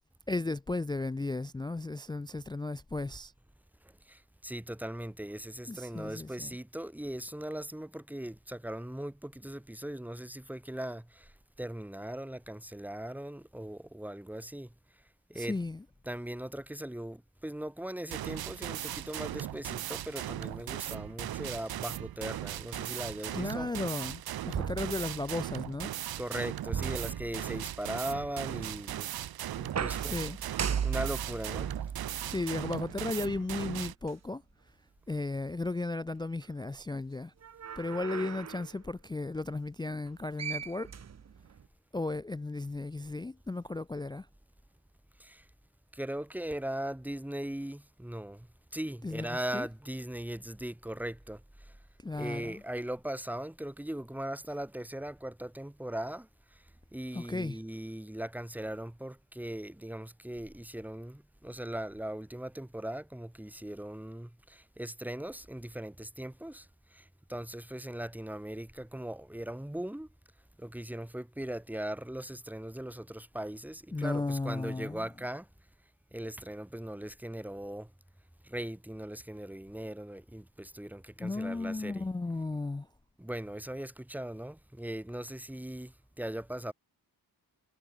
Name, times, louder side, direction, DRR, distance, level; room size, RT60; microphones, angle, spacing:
voice 1, 0.3-3.3 5.7-6.6 15.3-15.8 23.3-25.9 30.0-30.4 32.2-34.4 35.1-37.3 37.8-40.9 41.9-44.3 49.0-49.7 52.0-52.6 57.1-57.6 73.9-75.1 81.2-82.9, left 2 dB, 10° left, 0.3 m, -35 dB
voice 2, 4.1-11.3 11.6-14.7 15.3-15.6 16.1-23.8 26.2-29.1 29.5-30.2 30.8-31.7 45.2-45.4 45.9-48.5 48.7-51.4 52.1-56.3 56.9-66.6 66.9-67.0 67.3-70.1 70.6-75.4 76.1-77.9 78.4-82.0 83.2-86.7, right 1 dB, 5° right, 1.6 m, -39 dB
sound 1, 18.1-33.9, right 12 dB, 70° right, 0.5 m, -38 dB
sound 2, 24.5-25.6 26.7-27.9 29.6-33.2 34.1-34.2 37.4-38.7 40.1-40.2 40.4-41.6, right 7 dB, 40° right, 0.8 m, -37 dB
wide cardioid pair, 140°, 39 cm